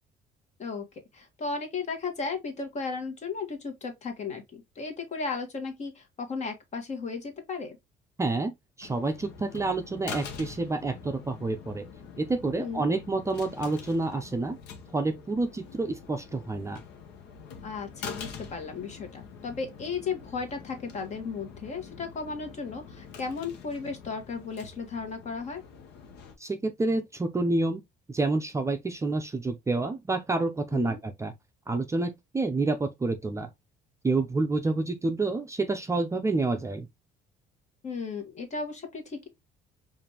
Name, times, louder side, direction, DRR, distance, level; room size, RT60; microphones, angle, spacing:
voice 1, 1.1-7.8 12.6-12.9 17.6-25.6 30.7-31.0 37.8-39.3, left 4 dB, 45° left, 1.4 m, -35 dB
voice 2, 8.2-8.5 8.8-11.8 12.2-14.6 14.9-16.8 26.4-27.8 28.1-31.3 31.7-33.5 34.0-36.9, right 3 dB, 15° right, 0.5 m, -28 dB
sound 1, 8.8-26.3, left 6 dB, 85° left, 0.9 m, -45 dB
4.9 x 2.6 x 2.8 m
cardioid pair, 110°, 17 cm